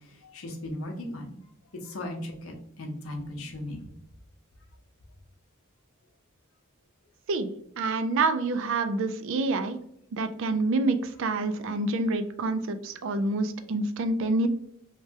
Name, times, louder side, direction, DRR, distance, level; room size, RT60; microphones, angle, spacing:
voice 1, 0.3-1.4 1.8-3.9, left 1 dB, 75° left, 2 dB, 0.7 m, -37 dB
voice 2, 7.8-9.8 10.1-14.5, right 2 dB, 65° right, 9 dB, 0.3 m, -27 dB
3.2 x 2.2 x 2.7 m, 0.74 s
head